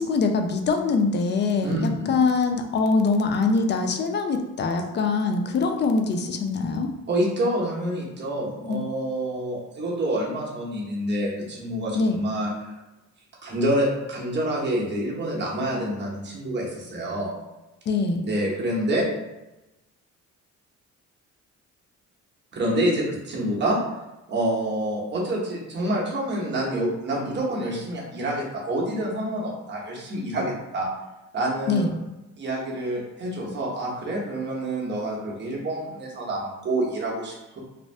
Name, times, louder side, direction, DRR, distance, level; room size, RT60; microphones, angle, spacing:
voice 1, 0.0-6.9 8.6-8.9 11.9-12.2 17.9-18.3 31.7-31.9, left 4 dB, 35° left, 5 dB, 0.4 m, -23 dB
voice 2, 1.6-2.1 7.1-12.7 13.4-17.3 18.2-19.0 22.5-23.8 24.3-30.9 31.3-31.9 32.4-37.6, right 1 dB, 35° right, -4 dB, 0.9 m, -27 dB
2.6 x 2.1 x 3.2 m, 1.0 s
cardioid pair, 90°, 30 cm